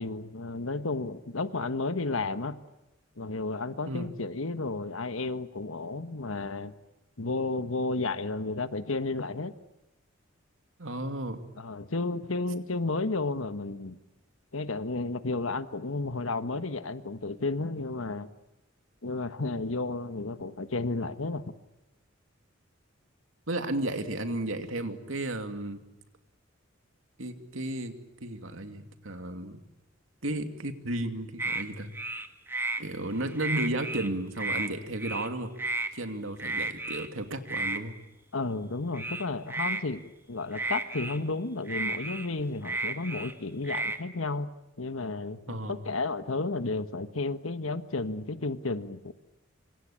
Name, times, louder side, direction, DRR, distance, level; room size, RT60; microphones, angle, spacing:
voice 1, 0.0-2.6 3.2-6.7 7.2-9.5 11.6-14.0 14.5-18.3 19.0-21.5 38.3-44.5 44.8-49.1, left 3 dB, 80° left, 11 dB, 1.5 m, -32 dB
voice 2, 10.8-11.4 23.5-25.8 27.2-29.6 30.2-31.9 32.8-35.5 35.9-38.0 45.5-45.8, right 1 dB, 75° right, 7 dB, 2.7 m, -33 dB
sound 1, 31.4-31.6 31.9-32.8 33.2-34.1 34.4-34.7 35.0-35.3 35.6-35.9 36.4-37.1 37.5-37.8 38.9-39.8 40.5-41.2 41.7-43.3 43.6-44.0, right 2 dB, 10° right, 1.7 m, -32 dB
26.0 x 26.0 x 8.8 m, 0.94 s
head